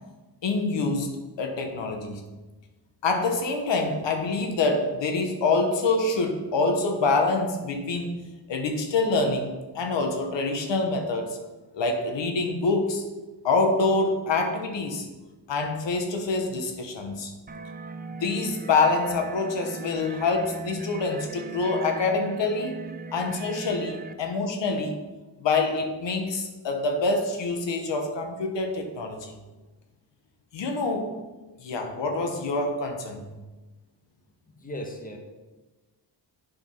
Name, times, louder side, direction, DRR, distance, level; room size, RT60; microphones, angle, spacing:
voice 1, 0.4-1.1 1.4-2.2 3.0-8.2 8.5-11.4 11.7-13.1 13.4-15.1 15.5-17.3 18.2-22.7 23.1-24.9 25.4-29.3 30.5-31.2 31.6-33.3, left 3 dB, 85° left, 4 dB, 1.2 m, -26 dB
sound 1, 17.5-24.1, right 3 dB, 20° right, 0.4 m, -39 dB
voice 2, 34.4-35.2, equal, 20° left, 3 dB, 1.3 m, -37 dB
7.8 x 5.2 x 5.5 m, 1.2 s
cardioid pair, 90°, 43 cm